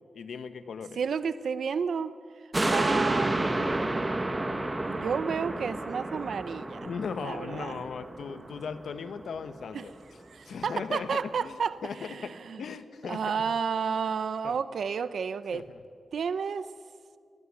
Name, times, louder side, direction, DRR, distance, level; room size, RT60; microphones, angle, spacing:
voice 1, 0.1-1.0 6.8-9.9 10.5-11.6 11.8-12.3 12.6-13.3 14.4-14.5 15.5-15.8, left 6 dB, 90° left, 11 dB, 1.4 m, -37 dB
voice 2, 1.0-2.1 2.7-4.0 4.8-6.9 7.2-7.8 9.7-9.8 10.3-11.8 12.0-12.6 13.1-15.6 16.1-16.7, right 6 dB, 70° right, 14 dB, 0.7 m, -31 dB
sound 1, 2.5-9.2 9.6-9.7, right 2 dB, 15° right, 1.3 m, -30 dB
24.0 x 18.0 x 9.9 m, 2.3 s
wide cardioid pair, 165°, 0 cm